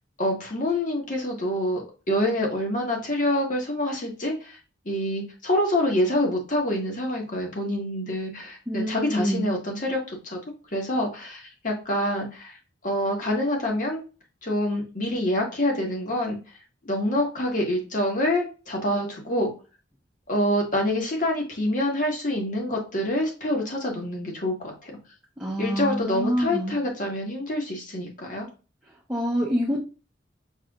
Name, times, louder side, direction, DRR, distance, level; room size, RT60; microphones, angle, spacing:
voice 1, 0.2-4.6 4.8-10.4 10.7-12.6 12.8-14.0 14.4-16.4 16.8-19.5 20.3-24.9 25.6-28.5, left 1 dB, 40° left, 0 dB, 1.4 m, -26 dB
voice 2, 8.7-9.5 25.4-26.8 29.1-29.8, equal, 5° right, -5 dB, 0.8 m, -26 dB
6.4 x 3.3 x 2.4 m, 0.33 s
head